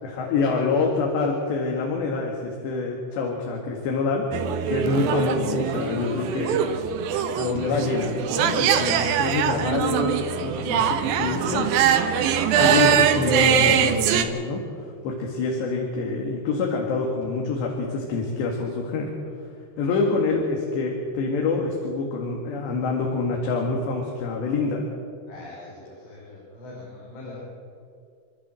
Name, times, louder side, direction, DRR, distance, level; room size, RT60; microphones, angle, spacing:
voice 1, 0.0-6.6 7.3-11.9 12.6-14.6 15.0-19.1 19.8-24.8, left 3 dB, 70° left, 0 dB, 4.1 m, -26 dB
sound 1, 4.3-14.2, right 8 dB, 70° right, 2.3 m, -22 dB
voice 2, 25.3-27.4, left 2 dB, 90° left, -4 dB, 7.0 m, -42 dB
28.5 x 12.0 x 7.7 m, 2.3 s
omnidirectional pair, 5.4 m